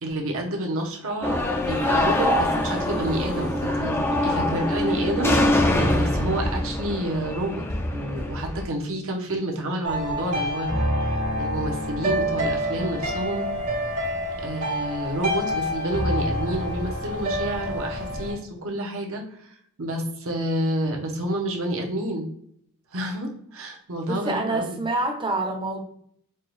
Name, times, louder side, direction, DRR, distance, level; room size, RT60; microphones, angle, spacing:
voice 1, 0.0-5.4 5.9-7.6 7.9-10.7 11.0-11.1 11.4-13.5 14.4-22.3 22.9-24.8, right 1 dB, 65° right, 1 dB, 0.9 m, -29 dB
sound 1, 1.2-8.7, left 1 dB, 10° left, 0.5 m, -24 dB
sound 2, 1.6-3.7, left 1 dB, 90° left, 1.2 m, -39 dB
sound 3, 9.8-18.3, equal, 85° right, 1.6 m, -27 dB
voice 2, 24.1-25.8, right 2 dB, 20° right, 2 dB, 0.7 m, -27 dB
4.5 x 2.3 x 3.1 m, 0.67 s
head